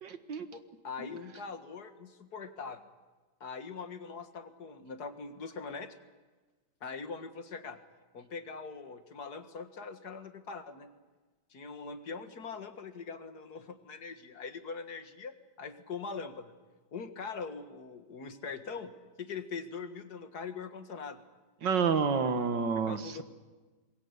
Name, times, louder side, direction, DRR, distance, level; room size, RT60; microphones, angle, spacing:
voice 1, 0.0-0.5 1.0-1.1 21.6-23.2, right 6 dB, 85° right, 9 dB, 2.2 m, -29 dB
voice 2, 0.5-2.8 3.4-5.9 6.8-7.8 8.1-10.9 11.5-16.5 16.9-18.9 19.2-21.2 22.9-23.2, left 5 dB, 60° left, 8 dB, 2.3 m, -42 dB
27.0 x 21.5 x 8.3 m, 1.3 s
omnidirectional pair, 1.9 m